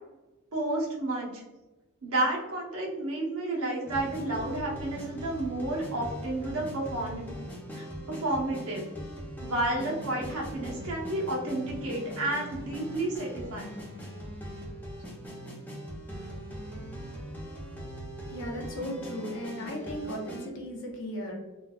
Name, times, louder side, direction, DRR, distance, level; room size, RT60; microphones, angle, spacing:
voice 1, 0.5-1.4 2.0-7.4 7.7-8.9 9.4-13.8, right 2 dB, 75° right, -3 dB, 0.9 m, -31 dB
sound 1, 3.8-20.5, equal, 10° left, 0.4 m, -41 dB
voice 2, 18.3-21.3, equal, 60° left, 0 dB, 0.7 m, -36 dB
3.3 x 2.3 x 2.3 m, 1.1 s
head